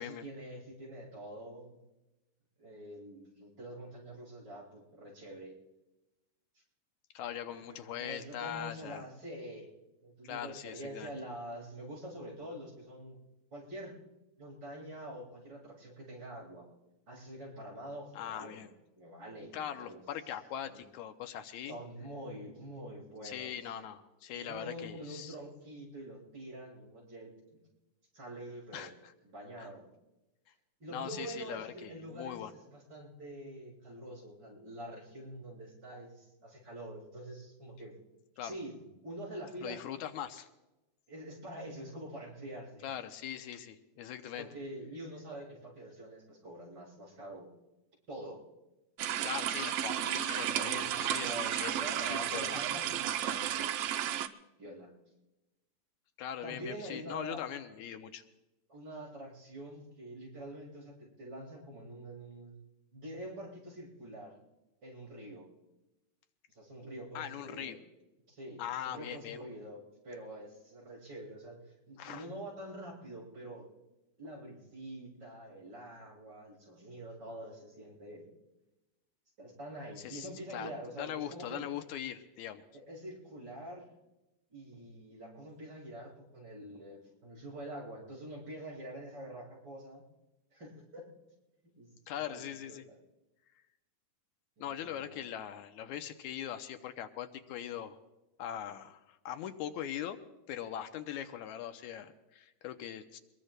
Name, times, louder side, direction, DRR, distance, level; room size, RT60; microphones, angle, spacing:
voice 1, 0.0-1.8 2.6-5.6 7.5-9.7 10.0-13.2 13.5-14.0 14.4-16.7 17.1-18.7 18.9-20.0 20.6-20.8 21.7-23.7 24.3-27.7 28.1-28.9 29.2-29.9 30.8-37.9 38.4-39.8 41.1-43.0 44.4-47.5 48.1-48.4 50.5-53.8 54.6-54.9 56.4-57.4 58.7-62.5 62.9-64.4 64.8-65.5 66.5-67.7 68.3-73.7 74.2-78.3 79.4-81.7 82.7-83.9 84.5-90.0 90.5-91.1 91.8-91.9 92.3-93.0 94.6-95.2, right 1 dB, 35° right, -5 dB, 6.5 m, -46 dB
voice 2, 7.1-9.0 10.2-11.1 18.1-18.7 19.5-21.8 23.2-25.4 28.7-29.1 29.6-29.7 30.9-32.5 38.4-38.6 39.6-40.5 42.8-44.5 49.2-52.6 56.2-58.2 67.2-67.8 68.6-69.4 72.0-72.3 80.0-80.7 81.0-82.6 92.1-92.9 94.6-98.0 98.4-100.2 100.5-103.2, left 10 dB, 85° left, 8 dB, 2.1 m, -41 dB
sound 1, 49.0-54.3, right 10 dB, 80° right, 1.4 m, -33 dB
23.5 x 21.5 x 2.2 m, 0.99 s
omnidirectional pair, 3.3 m